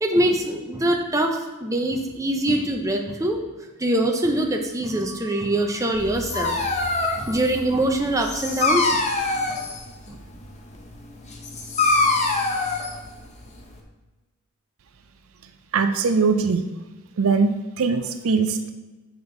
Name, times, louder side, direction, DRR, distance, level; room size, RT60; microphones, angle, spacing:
voice 1, 0.0-3.4 3.8-6.5 7.2-9.0 10.1-10.2, right 1 dB, 15° right, 2 dB, 0.6 m, -23 dB
Dog, 5.9-13.8, left 3 dB, 30° left, 0.8 m, -25 dB
voice 2, 15.7-16.7 17.2-18.7, right 4 dB, 65° right, 8 dB, 0.5 m, -21 dB
6.1 x 5.2 x 3.9 m, 1.2 s
head